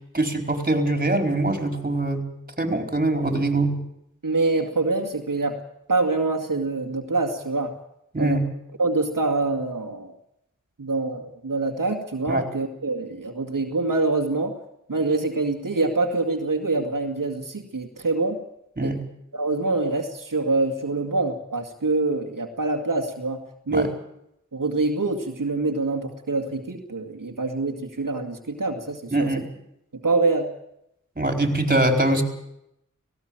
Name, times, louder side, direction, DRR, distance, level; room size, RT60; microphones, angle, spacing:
voice 1, 0.1-2.3 2.6-3.8 8.1-8.4 12.3-12.4 18.8-19.0 23.7-23.9 29.1-29.4 31.2-32.2, right 2 dB, 25° right, 6 dB, 4.5 m, -23 dB
voice 2, 4.2-5.6 5.9-7.7 8.2-8.4 8.8-10.1 10.8-14.6 14.9-18.4 18.8-18.9 19.3-23.4 23.7-23.9 24.5-29.3 29.9-30.5, right 3 dB, 85° right, 3 dB, 2.2 m, -25 dB
18.0 x 17.5 x 9.0 m, 0.79 s
wide cardioid pair, 45°, 32 cm